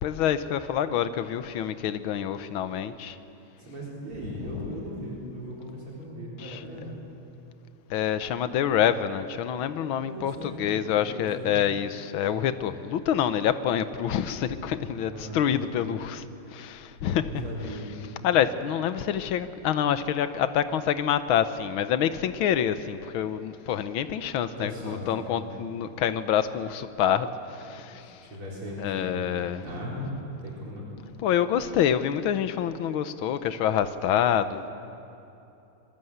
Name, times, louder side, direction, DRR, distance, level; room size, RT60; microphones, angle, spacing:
voice 1, 0.0-3.2 6.4-6.6 7.9-16.2 16.5-17.3 18.2-28.2 28.8-29.6 31.2-34.7, left 9 dB, 75° left, 11 dB, 1.7 m, -27 dB
voice 2, 3.6-7.0 9.8-11.6 15.1-15.6 17.2-18.0 24.6-25.4 27.6-30.1 30.4-30.9, equal, 80° right, -4 dB, 5.2 m, -38 dB
25.0 x 21.5 x 8.1 m, 2.9 s
omnidirectional pair, 2.3 m